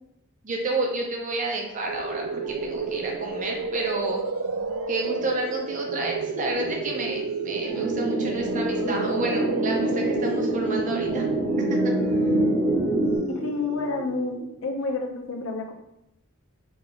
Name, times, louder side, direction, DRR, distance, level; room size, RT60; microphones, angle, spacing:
voice 1, 0.4-4.2 4.9-11.3 11.7-11.9, right 2 dB, 40° right, 1 dB, 0.5 m, -30 dB
sound 1, 1.9-14.7, right 4 dB, 90° right, 0.4 m, -31 dB
sound 2, 7.7-13.2, right 1 dB, 20° left, 1.3 m, -25 dB
voice 2, 13.3-15.7, left 3 dB, 70° left, 3 dB, 0.6 m, -29 dB
4.1 x 3.4 x 2.2 m, 0.83 s
head